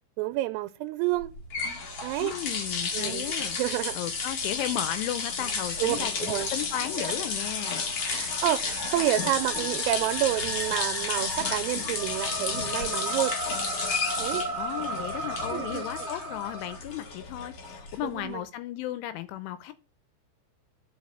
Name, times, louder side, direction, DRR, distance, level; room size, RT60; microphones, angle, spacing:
voice 1, 0.2-1.3 2.0-2.3 2.9-3.3 3.6-4.0 5.8-6.5 8.0-13.4 14.2-14.4 15.5-15.8 18.0-18.4, right 15 dB, 90° right, 3.3 m, -29 dB
sound 1, 1.2-18.2, left 4 dB, 60° left, 1.5 m, -32 dB
voice 2, 2.2-3.6 3.9-7.9 14.6-19.7, left 13 dB, 80° left, 3.0 m, -35 dB
sound 2, 8.6-16.8, right 2 dB, 60° right, 1.1 m, -36 dB
9.6 x 5.9 x 6.3 m
omnidirectional pair, 5.8 m